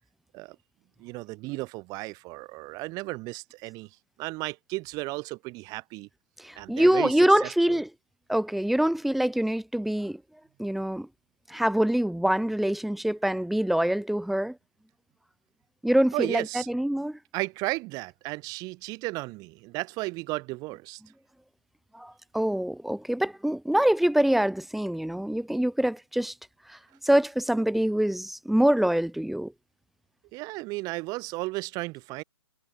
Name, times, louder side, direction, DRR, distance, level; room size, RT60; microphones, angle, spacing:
voice 1, 1.0-3.9 4.2-6.1 6.6-7.1 7.4-7.5 16.1-16.7 17.3-21.0 30.3-32.2, right 23 dB, 25° right, 6.3 m, -34 dB
voice 2, 6.4-7.9 8.3-10.2 10.6-11.1 11.5-14.6 15.8-17.2 21.9-26.3 26.7-26.8 27.0-29.5, right 1 dB, ahead, 2.4 m, -25 dB
figure-of-eight pair, 125°, 15 cm